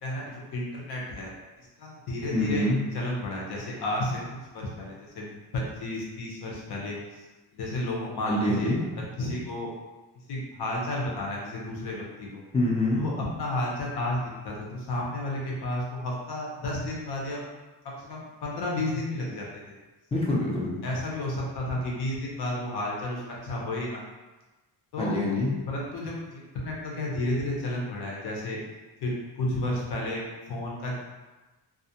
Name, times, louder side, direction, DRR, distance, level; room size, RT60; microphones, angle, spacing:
voice 1, 0.0-1.3 1.8-2.7 2.9-7.2 7.5-9.7 10.3-12.4 13.0-17.4 17.8-19.8 20.8-24.0 24.9-25.2 25.7-28.6 29.0-31.0, left 1 dB, 70° left, -3 dB, 0.8 m, -32 dB
voice 2, 2.3-2.8 8.3-8.8 12.5-13.0 20.1-20.7 25.0-25.5, left 1 dB, 15° left, -5 dB, 0.4 m, -25 dB
2.4 x 2.0 x 2.7 m, 1.2 s
wide cardioid pair, 160°, 41 cm